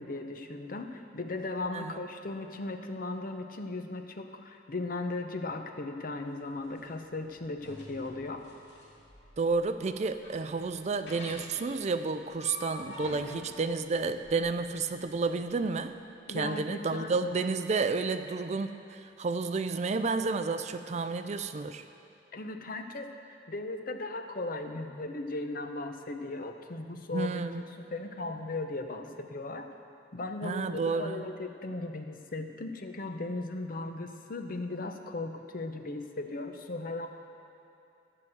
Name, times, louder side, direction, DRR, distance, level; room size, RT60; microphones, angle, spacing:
voice 1, 0.0-8.5 13.3-13.4 16.3-17.2 22.3-23.1 23.5-27.4 27.8-29.7 30.1-37.1, left 2 dB, 55° left, 6 dB, 0.8 m, -37 dB
voice 2, 1.7-2.0 9.4-16.0 16.3-21.8 27.1-27.6 30.4-31.3, right 4 dB, 40° right, 10 dB, 0.4 m, -31 dB
sound 1, 6.3-15.8, left 1 dB, 90° left, 2.7 m, -48 dB
13.0 x 5.9 x 7.8 m, 2.7 s
head